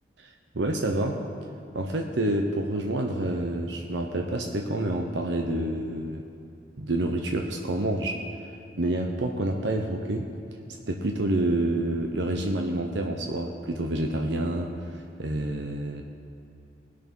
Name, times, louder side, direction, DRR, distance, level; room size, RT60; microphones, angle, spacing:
voice 1, 0.5-1.2 1.7-6.2 6.8-10.3 10.9-16.0, right 1 dB, 85° right, 2 dB, 0.9 m, -28 dB
19.5 x 6.6 x 5.4 m, 2.6 s
head